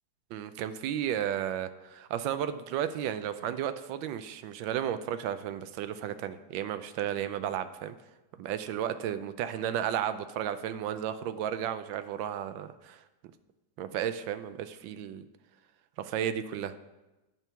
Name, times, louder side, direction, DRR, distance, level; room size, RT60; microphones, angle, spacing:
voice 1, 0.3-7.9 8.4-13.0 13.8-15.3 16.0-16.7, right 10 dB, 85° right, 11 dB, 1.3 m, -33 dB
9.1 x 4.5 x 6.8 m, 1.0 s
omnidirectional pair, 2.0 m